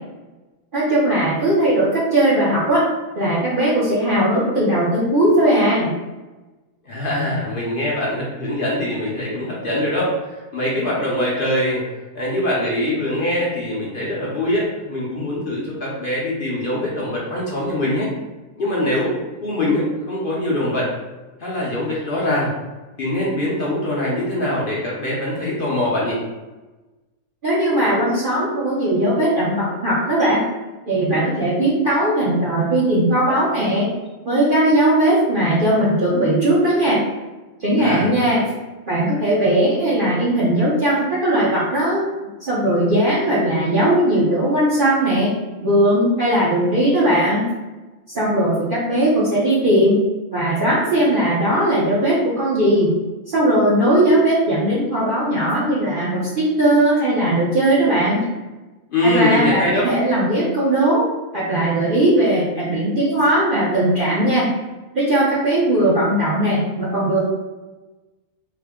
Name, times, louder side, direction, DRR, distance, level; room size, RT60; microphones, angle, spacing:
voice 1, 0.7-2.8 3.1-5.9 27.4-30.4 30.9-33.9 34.2-37.0 37.6-38.4 38.9-42.0 42.4-45.3 45.6-47.4 48.1-50.0 50.3-52.9 53.3-58.2 59.0-61.0 61.3-64.5 64.9-67.2, right 1 dB, 45° right, -8 dB, 0.8 m, -18 dB
voice 2, 6.8-11.8 12.1-18.1 18.6-19.1 19.4-20.9 21.4-22.5 23.0-26.2 37.8-38.1 58.9-59.9, left 1 dB, 50° left, -5 dB, 0.8 m, -23 dB
3.5 x 2.1 x 3.5 m, 1.1 s
omnidirectional pair, 1.4 m